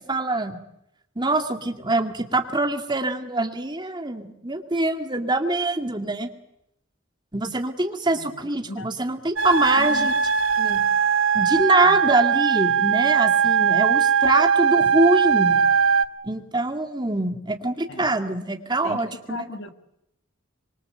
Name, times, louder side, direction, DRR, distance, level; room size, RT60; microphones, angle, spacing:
voice 1, 0.1-0.6 1.2-6.3 7.3-10.1 10.6-10.8 11.3-15.6 16.2-19.4, right 2 dB, 20° right, 2.3 m, -24 dB
sound 1, 9.4-16.0, right 6 dB, 75° right, 1.1 m, -20 dB
voice 2, 9.8-10.1 11.8-12.0 17.9-18.1 18.8-19.0 19.3-19.7, left 2 dB, 60° left, 1.8 m, -36 dB
25.5 x 23.0 x 7.9 m
head